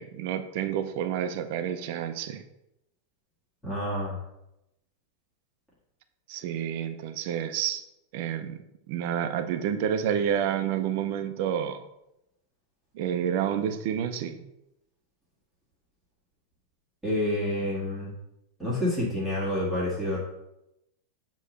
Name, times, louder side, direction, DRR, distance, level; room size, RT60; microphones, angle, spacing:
voice 1, 0.0-2.4 6.3-7.8 8.1-8.6 8.9-11.8 12.9-14.5, right 9 dB, 55° right, 8 dB, 0.6 m, -29 dB
voice 2, 3.6-4.2 17.0-18.1 18.6-20.2, left 1 dB, ahead, -9 dB, 1.7 m, -28 dB
6.6 x 3.1 x 5.1 m, 0.87 s
supercardioid pair, 155°, 0 cm